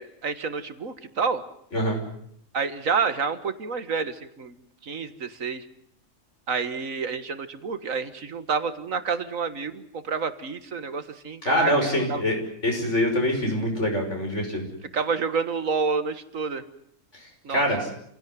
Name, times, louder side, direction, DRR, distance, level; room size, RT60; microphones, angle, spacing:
voice 1, 0.0-1.4 2.5-4.6 4.8-5.6 6.5-12.2 14.9-16.6 17.4-17.7, right 5 dB, 75° right, 11 dB, 2.0 m, -29 dB
voice 2, 11.4-12.4 12.6-14.7 17.1-17.2 17.5-17.9, equal, 55° left, 2 dB, 6.6 m, -24 dB
28.5 x 17.0 x 9.4 m, 0.71 s
omnidirectional pair, 1.4 m